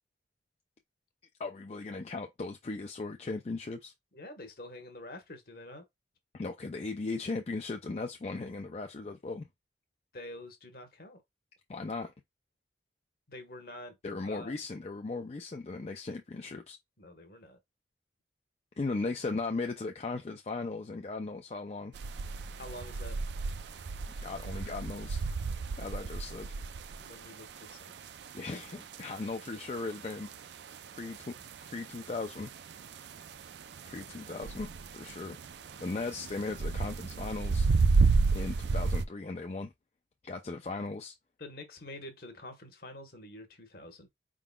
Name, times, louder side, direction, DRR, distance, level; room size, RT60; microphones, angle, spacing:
voice 1, 1.4-3.9 6.3-9.5 11.7-12.1 14.0-16.8 18.8-21.9 24.2-25.2 25.8-26.5 28.3-30.3 31.0-31.3 31.6-32.5 33.8-35.4 35.8-37.7 38.3-39.7 40.2-41.1, left 3 dB, 35° left, 0.4 m, -37 dB
voice 2, 4.1-5.8 10.1-11.2 13.3-13.9 14.2-14.5 17.0-17.6 22.6-23.2 27.0-27.9 41.4-44.1, left 1 dB, 55° left, 1.2 m, -47 dB
sound 1, 21.9-39.0, right 4 dB, 75° right, 0.4 m, -32 dB
4.8 x 3.7 x 2.2 m
head